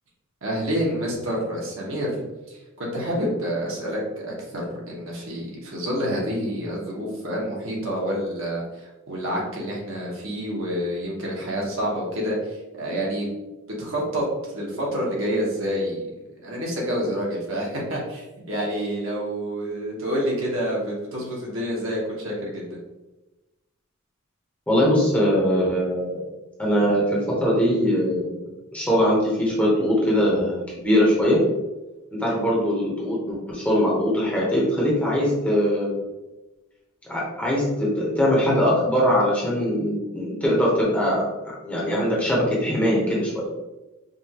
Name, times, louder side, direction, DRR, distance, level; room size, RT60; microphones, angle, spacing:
voice 1, 0.4-13.3 13.8-16.0 16.4-22.8, equal, 60° right, -3 dB, 1.2 m, -28 dB
voice 2, 24.7-26.2 26.6-31.4 32.1-35.9 37.1-41.2 41.6-43.5, equal, 5° left, -5 dB, 0.9 m, -21 dB
5.2 x 2.5 x 2.9 m, 1.1 s
head